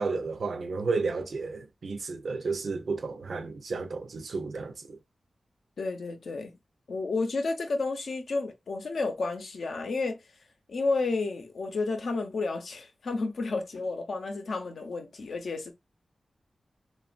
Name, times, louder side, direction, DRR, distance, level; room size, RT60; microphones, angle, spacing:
voice 1, 0.0-5.0, right 4 dB, 80° right, 0.5 m, -32 dB
voice 2, 5.8-6.5 6.9-10.2 10.7-15.7, left 3 dB, 85° left, 0.6 m, -31 dB
3.0 x 2.3 x 2.4 m
wide cardioid pair, 115°, 0 cm